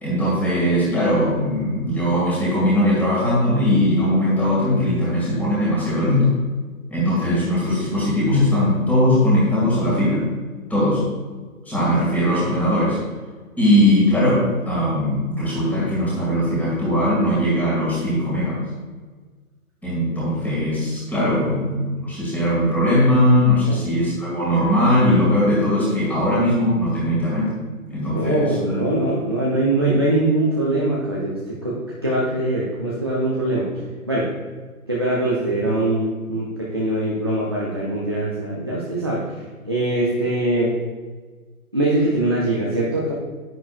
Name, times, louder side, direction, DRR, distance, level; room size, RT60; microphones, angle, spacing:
voice 1, 0.0-6.3 6.9-10.3 10.7-11.0 11.7-13.0 13.6-18.6 19.8-27.5 27.9-28.5, left 1 dB, 5° left, -7 dB, 2.0 m, -19 dB
voice 2, 28.1-31.8 32.0-33.7 34.1-34.3 34.9-39.2 39.6-40.7 41.7-43.1, right 1 dB, 20° right, -6 dB, 0.5 m, -22 dB
9.7 x 9.3 x 2.4 m, 1.4 s
hypercardioid pair, 150°, 45 cm